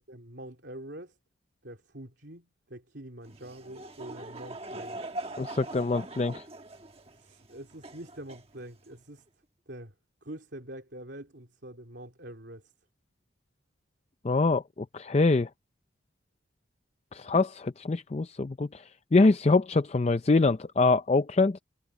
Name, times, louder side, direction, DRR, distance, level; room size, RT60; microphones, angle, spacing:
voice 1, 0.1-1.1 1.6-5.0 7.1-9.2 9.7-9.9 10.2-12.6, right 1 dB, 60° right, 3.4 m, -45 dB
Laughter / Crowd, 3.2-9.0, right 2 dB, 30° right, 1.3 m, -42 dB
voice 2, 5.4-6.4 14.2-14.6 14.9-15.5 17.1-21.6, left 3 dB, 30° left, 0.4 m, -24 dB
head